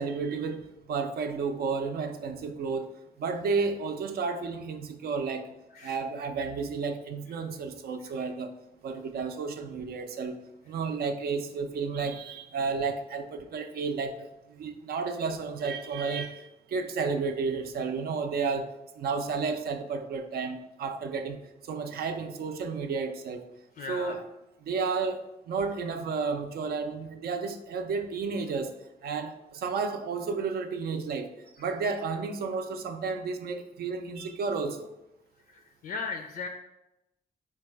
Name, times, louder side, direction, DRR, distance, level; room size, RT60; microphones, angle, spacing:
voice 1, 0.0-2.9 3.2-5.5 5.8-8.5 8.8-10.4 10.7-18.7 19.0-23.4 23.9-24.2 24.6-28.7 29.0-31.3 31.6-34.9, right 4 dB, 80° right, 6 dB, 0.5 m, -32 dB
voice 2, 23.8-24.2 35.5-36.5, left 4 dB, 70° left, 5 dB, 0.4 m, -37 dB
4.6 x 2.3 x 4.6 m, 0.91 s
wide cardioid pair, 125°, 16 cm